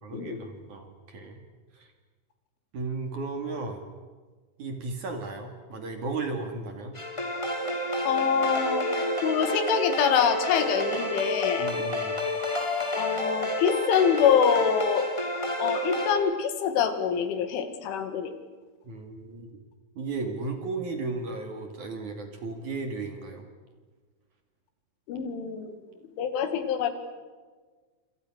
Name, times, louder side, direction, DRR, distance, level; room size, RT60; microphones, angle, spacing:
voice 1, 0.0-1.4 1.7-1.9 2.7-3.9 4.6-6.9 11.6-12.1 18.8-19.5 19.9-23.5, right 3 dB, 45° right, 5 dB, 3.4 m, -35 dB
sound 1, 6.9-16.1, left 1 dB, 5° left, 3.1 m, -29 dB
voice 2, 8.1-11.7 12.9-15.1 15.6-18.3 25.1-25.7 26.2-26.9, left 7 dB, 85° left, 8 dB, 4.6 m, -25 dB
28.0 x 27.5 x 6.4 m, 1.4 s
omnidirectional pair, 5.4 m